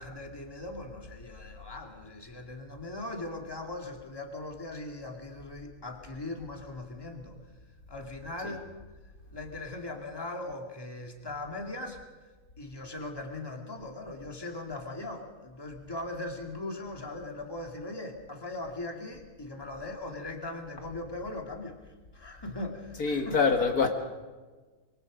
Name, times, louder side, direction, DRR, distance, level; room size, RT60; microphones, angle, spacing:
voice 1, 0.0-7.4 7.9-8.7 9.3-12.0 12.6-21.8 22.1-23.4, left 2 dB, 15° left, 2.3 m, -39 dB
voice 2, 23.0-23.9, left 5 dB, 60° left, 2.1 m, -25 dB
24.5 x 23.5 x 5.1 m
omnidirectional pair, 1.8 m